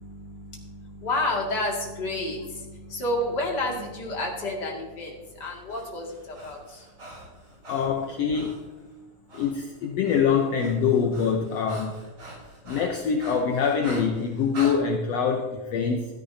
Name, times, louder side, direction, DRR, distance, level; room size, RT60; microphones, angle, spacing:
voice 1, 0.0-6.8, left 1 dB, 35° left, -1 dB, 2.6 m, -30 dB
Breathing, 5.4-8.6 9.3-9.5 9.8-14.8, right 1 dB, 35° right, 4.3 m, -43 dB
voice 2, 7.7-8.6 9.3-11.9 12.7-16.1, left 6 dB, 70° left, 3 dB, 1.8 m, -24 dB
16.0 x 13.0 x 2.8 m, 1.2 s
omnidirectional pair, 3.4 m